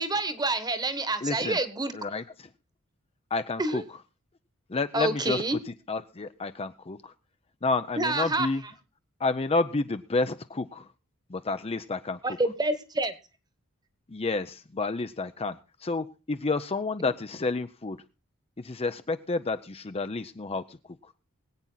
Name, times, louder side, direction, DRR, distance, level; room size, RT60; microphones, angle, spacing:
voice 1, 0.0-1.9 3.6-3.8 4.9-5.6 8.0-8.5 12.2-13.1 17.0-17.1, right 2 dB, 20° right, 11 dB, 1.4 m, -28 dB
voice 2, 1.2-1.6 1.9-2.5 3.3-3.8 4.7-5.6 5.9-7.1 7.6-8.6 9.2-10.9 11.3-12.2 14.1-18.0 18.6-20.8, left 3 dB, 30° left, 10 dB, 0.6 m, -30 dB
22.5 x 8.7 x 3.9 m, 0.32 s
head